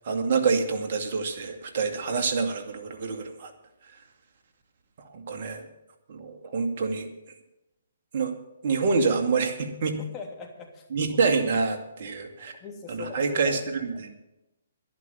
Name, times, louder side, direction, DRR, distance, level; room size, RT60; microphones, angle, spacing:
voice 1, 0.1-3.5 5.1-5.7 6.1-7.1 8.1-8.3 8.6-10.0 10.9-12.5 12.9-14.1, right 4 dB, 55° right, 6 dB, 2.2 m, -27 dB
voice 2, 10.1-11.2 12.4-14.0, left 5 dB, 20° left, 1 dB, 3.0 m, -41 dB
11.0 x 11.0 x 7.3 m, 0.93 s
hypercardioid pair, 140°, 0 cm